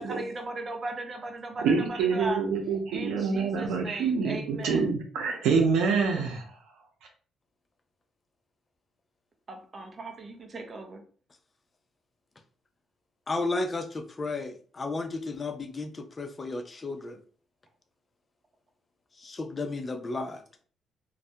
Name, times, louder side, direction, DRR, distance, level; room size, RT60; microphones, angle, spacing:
voice 1, 0.0-2.4 2.9-4.9 9.5-11.0, right 2 dB, 40° right, 5 dB, 0.6 m, -38 dB
voice 2, 1.6-6.4, right 5 dB, 85° right, 2 dB, 0.6 m, -26 dB
voice 3, 13.3-17.2 19.2-20.4, left 3 dB, 30° left, 6 dB, 0.4 m, -33 dB
2.2 x 2.1 x 2.7 m, 0.43 s
cardioid pair, 90°, 0 cm